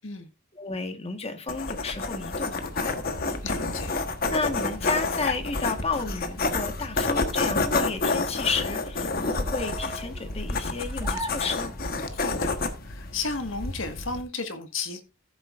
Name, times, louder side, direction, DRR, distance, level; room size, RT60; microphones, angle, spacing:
voice 1, 0.5-2.9 4.3-11.7, left 3 dB, 30° left, 1.5 m, -32 dB
sound 1, 1.5-14.2, left 3 dB, 50° left, 1.3 m, -29 dB
voice 2, 3.4-3.9 12.1-12.5 12.8-15.0, left 4 dB, 80° left, 1.7 m, -33 dB
sound 2, 7.7-12.2, right 1 dB, 20° right, 1.6 m, -43 dB
14.5 x 7.8 x 2.6 m
head